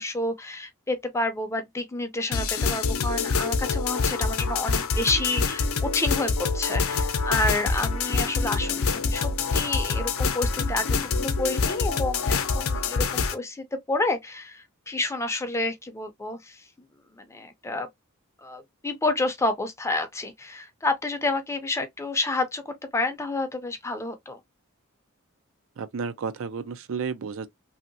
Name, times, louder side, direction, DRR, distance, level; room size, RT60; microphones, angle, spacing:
voice 1, 0.0-16.7 17.2-17.9 18.4-24.4, left 2 dB, 15° left, 0.5 m, -29 dB
sound 1, 2.3-13.3, left 4 dB, 75° left, 0.6 m, -26 dB
voice 2, 25.8-27.5, right 5 dB, 65° right, 0.4 m, -32 dB
2.9 x 2.7 x 2.6 m
head